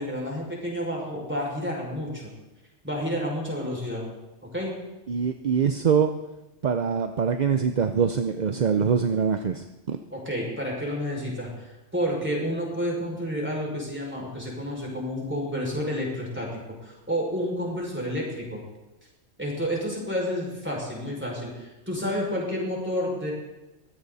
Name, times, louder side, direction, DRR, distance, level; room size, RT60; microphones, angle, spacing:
voice 1, 0.0-2.3 2.8-4.0 4.5-4.7 10.1-18.6 19.4-23.3, equal, 10° right, -3 dB, 5.7 m, -30 dB
voice 2, 5.1-6.1 6.6-10.0, right 6 dB, 45° right, 8 dB, 0.6 m, -24 dB
22.0 x 15.5 x 4.1 m, 1.0 s
omnidirectional pair, 1.3 m